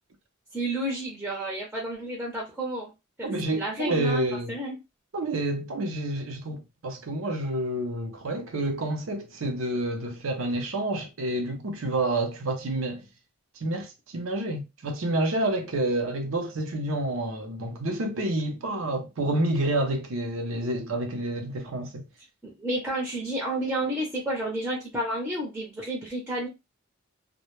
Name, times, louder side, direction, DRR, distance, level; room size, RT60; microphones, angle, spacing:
voice 1, 0.5-2.9 3.2-4.8 22.4-26.5, right 1 dB, 5° right, 0.6 m, -31 dB
voice 2, 3.2-4.5 5.1-13.0 13.6-22.1, right 1 dB, 70° right, 0.6 m, -29 dB
2.1 x 2.1 x 3.0 m
head